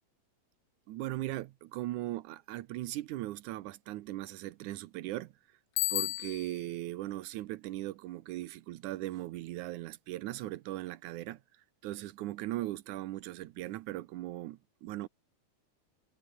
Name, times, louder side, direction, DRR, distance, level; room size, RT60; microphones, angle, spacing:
voice 1, 0.9-5.3 5.9-11.4 11.8-15.1, right 16 dB, 80° right, 1.8 m, -39 dB
Bicycle bell, 5.8-6.7, left 18 dB, 85° left, 2.7 m, -33 dB
omnidirectional pair, 4.5 m